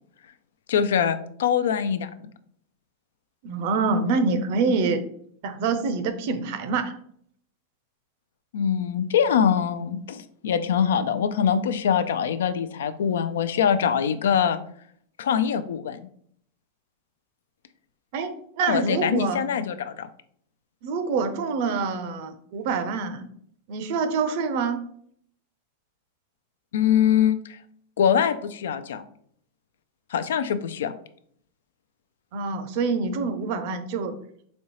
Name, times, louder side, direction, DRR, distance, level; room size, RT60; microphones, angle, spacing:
voice 1, 0.7-2.1 8.5-14.6 15.2-16.0 18.7-20.1 26.7-27.6 28.0-29.0 30.1-30.9, left 8 dB, 85° left, 11 dB, 0.4 m, -23 dB
voice 2, 3.4-5.0 5.4-7.0 18.1-19.4 20.8-23.3 23.7-24.8 32.3-34.1, right 4 dB, 55° right, 9 dB, 0.5 m, -26 dB
4.2 x 2.7 x 3.1 m, 0.63 s
supercardioid pair, 140°, 0 cm